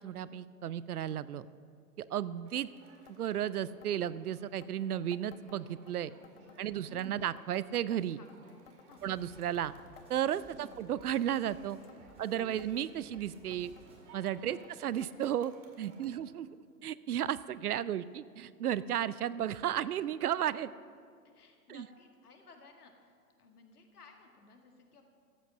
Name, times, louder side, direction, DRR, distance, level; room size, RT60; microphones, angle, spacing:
voice 1, 0.0-1.4 2.0-2.7 3.1-6.1 6.6-8.2 9.0-9.7 10.1-11.8 12.2-13.7 14.1-16.5 16.8-20.7 21.7-21.9, right 10 dB, 70° right, 18 dB, 0.6 m, -34 dB
Crowd, 2.4-16.2, right 4 dB, 45° right, 2.2 m, -60 dB
sound 1, 3.1-3.2 3.4-3.5 3.8-4.2 4.6-5.9 6.2-6.6 7.0-8.4 8.7-9.0 9.4-10.8 11.1-11.5 11.8-13.2 13.5-13.9 14.3-14.7 15.0-15.1 15.4-15.5 16.3-16.4 17.1-17.2, left 11 dB, 40° left, 0.6 m, -58 dB
voice 2, 6.1-7.1 8.2-9.1 10.5-10.8 12.2-12.6 14.4-14.7 16.1-16.2 21.3-23.1 23.4-25.0, left 4 dB, 70° left, 3 dB, 2.0 m, -58 dB
sound 2, 9.0-14.0, right 1 dB, 10° right, 2.0 m, -59 dB
14.0 x 8.3 x 6.4 m, 2.2 s
figure-of-eight pair, 115°, 47 cm